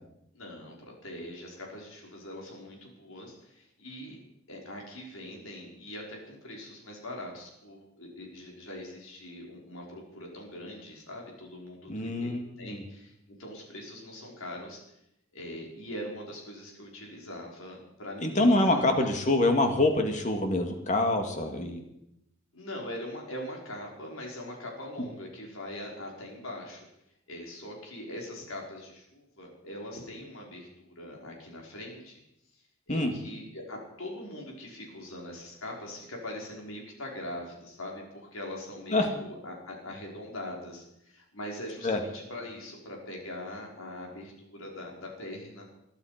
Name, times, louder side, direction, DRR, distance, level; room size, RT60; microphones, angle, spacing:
voice 1, 0.3-4.2 4.5-12.3 12.6-13.1 13.4-15.0 15.3-18.9 22.5-26.9 27.3-32.2 32.5-45.7, left 1 dB, 80° left, -1 dB, 5.3 m, -42 dB
voice 2, 11.9-12.8 18.2-21.8 32.9-33.1 38.9-39.1 41.8-42.0, left 2 dB, 35° left, 4 dB, 2.4 m, -25 dB
22.0 x 12.0 x 5.2 m, 0.81 s
head